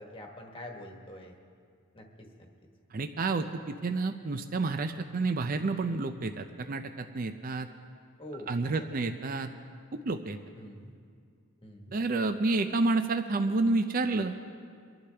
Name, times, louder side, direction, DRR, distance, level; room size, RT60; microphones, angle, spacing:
voice 1, 0.0-1.4 1.9-2.5 8.2-8.9 10.5-10.9 11.6-11.9, left 1 dB, 25° left, 2 dB, 1.4 m, -45 dB
voice 2, 2.9-7.7 8.5-9.5 9.9-10.4 11.9-14.3, right 3 dB, 40° right, 8 dB, 0.4 m, -29 dB
25.0 x 11.5 x 3.4 m, 2.2 s
head